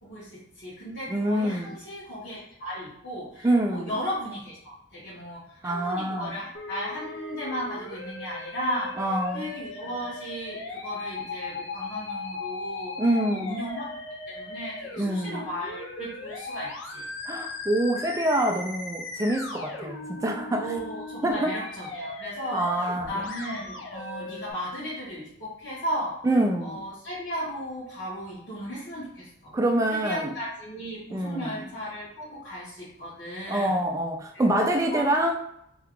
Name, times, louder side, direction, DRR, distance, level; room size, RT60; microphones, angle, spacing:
voice 1, 0.0-13.9 14.3-17.1 20.6-26.2 26.6-29.5 29.9-33.8 34.3-35.1, equal, 55° left, -11 dB, 1.2 m, -35 dB
voice 2, 1.1-1.8 3.4-3.9 5.6-6.4 9.0-9.5 13.0-13.6 15.0-15.4 17.3-20.7 21.2-21.6 22.5-23.1 26.2-26.8 29.5-30.3 31.1-31.6 33.5-35.4, right 1 dB, 15° right, 2 dB, 0.3 m, -26 dB
Musical instrument, 6.5-24.5, left 3 dB, 70° left, 0.6 m, -38 dB
2.8 x 2.3 x 3.6 m, 0.74 s
head